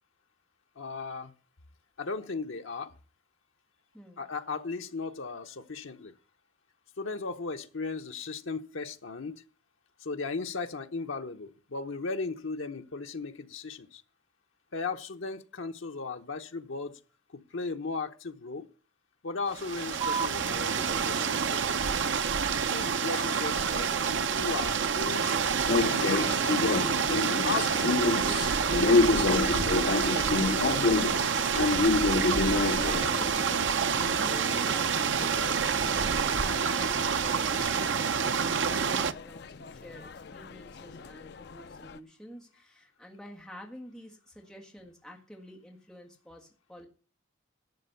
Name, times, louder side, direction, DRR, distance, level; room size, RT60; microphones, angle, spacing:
voice 1, 0.8-1.3 2.0-2.9 4.2-6.1 7.0-9.4 10.0-14.0 14.7-17.0 17.3-18.7 19.2-22.0 22.7-25.4 25.8-26.3 27.4-28.4 28.7-31.2, left 4 dB, 75° left, 0.9 m, -36 dB
voice 2, 3.9-4.2 32.7-46.9, equal, ahead, 1.7 m, -48 dB
sound 1, 19.5-39.1, right 6 dB, 65° right, 0.6 m, -28 dB
sound 2, 20.0-27.0, right 6 dB, 25° right, 1.3 m, -43 dB
sound 3, 25.7-36.5 36.8-42.0, left 3 dB, 55° left, 0.5 m, -29 dB
12.0 x 7.2 x 6.8 m
head